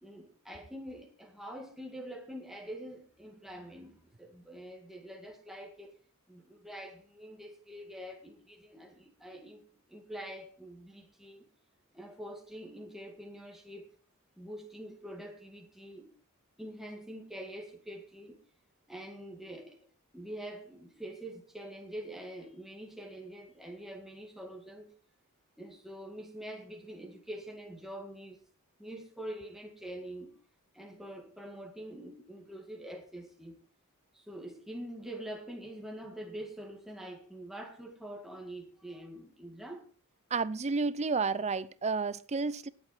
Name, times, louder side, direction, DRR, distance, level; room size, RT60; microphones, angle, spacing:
voice 1, 0.0-5.9 6.3-11.5 11.9-13.9 14.4-16.1 16.6-18.4 18.9-19.9 20.1-25.0 25.6-28.4 28.8-30.4 30.7-33.6 34.1-39.9, right 1 dB, ahead, 1.9 m, -45 dB
voice 2, 40.3-42.7, right 4 dB, 30° right, 0.6 m, -31 dB
19.0 x 7.8 x 4.3 m
head